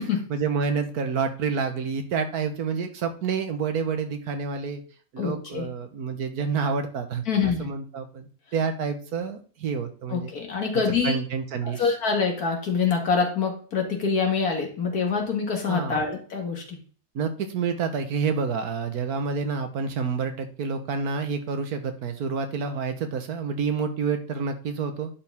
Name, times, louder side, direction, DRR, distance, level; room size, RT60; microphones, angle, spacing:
voice 1, 0.3-4.8 5.1-10.3 11.0-11.9 15.7-16.0 17.1-25.1, right 5 dB, 80° right, 7 dB, 1.6 m, -28 dB
voice 2, 5.2-5.7 7.3-7.7 10.1-11.2 11.6-16.8, left 5 dB, 80° left, 2 dB, 2.3 m, -25 dB
11.0 x 4.7 x 3.6 m, 0.41 s
omnidirectional pair, 1.6 m